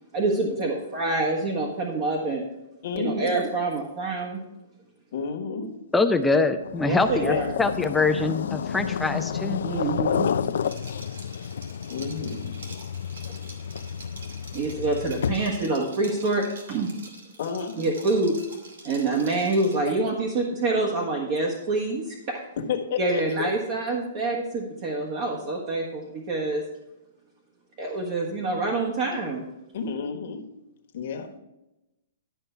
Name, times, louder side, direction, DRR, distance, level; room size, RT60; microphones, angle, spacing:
voice 1, 0.1-2.4 2.9-4.4 6.8-7.5 9.6-10.3 14.5-16.9 17.8-18.4 18.8-22.4 23.0-26.6 27.8-29.4, right 2 dB, 40° right, -1 dB, 1.5 m, -26 dB
voice 2, 2.8-3.3 5.1-5.8 7.2-7.5 10.4-10.7 11.4-11.5 11.9-12.5 17.4-17.8 22.6-23.5 29.7-30.5 30.9-31.3, left 6 dB, 60° left, 3 dB, 1.4 m, -31 dB
voice 3, 5.9-9.6, left 3 dB, 5° left, 7 dB, 0.5 m, -24 dB
sound 1, 6.6-15.7, left 7 dB, 80° left, 0.4 m, -31 dB
Liquid, 10.6-19.9, right 3 dB, 90° right, 2.3 m, -46 dB
12.0 x 5.4 x 4.6 m, 0.94 s
hypercardioid pair, 150°, 0 cm